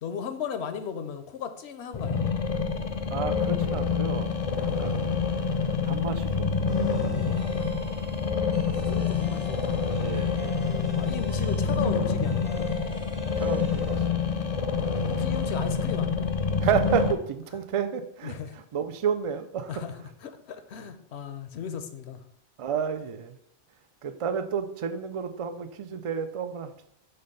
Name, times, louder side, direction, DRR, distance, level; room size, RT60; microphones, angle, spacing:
voice 1, 0.0-2.2 4.5-4.8 8.5-9.8 10.9-12.7 14.8-16.3 18.2-18.5 19.7-19.9 20.2-22.2, left 7 dB, 80° left, 0.9 m, -36 dB
sound 1, 1.9-17.1, left 5 dB, 45° left, 0.5 m, -27 dB
voice 2, 3.1-5.1 5.8-8.1 10.0-10.6 13.3-14.3 16.6-19.7 22.6-23.4 24.0-26.9, right 7 dB, 55° right, 0.3 m, -31 dB
sound 2, 6.7-14.8, equal, 40° right, 1.0 m, -47 dB
5.6 x 3.2 x 5.4 m
omnidirectional pair, 1.1 m